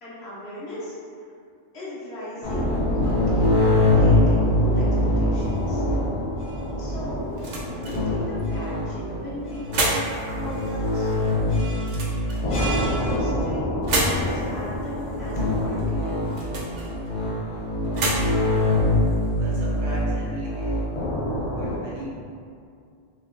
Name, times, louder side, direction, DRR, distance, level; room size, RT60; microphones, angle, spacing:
voice 1, 0.0-1.3 1.7-2.6 2.9-5.8 6.8-7.2 7.7-13.6 14.1-16.2, left 1 dB, 70° left, -9 dB, 1.0 m, -37 dB
sound 1, 2.4-21.8, left 1 dB, 45° left, 0.4 m, -24 dB
sound 2, 6.5-20.0, right 2 dB, 60° right, 0.5 m, -33 dB
voice 2, 19.4-20.8 21.5-22.3, equal, 80° right, -6 dB, 0.9 m, -37 dB
3.4 x 2.1 x 2.5 m, 2.3 s
omnidirectional pair, 1.2 m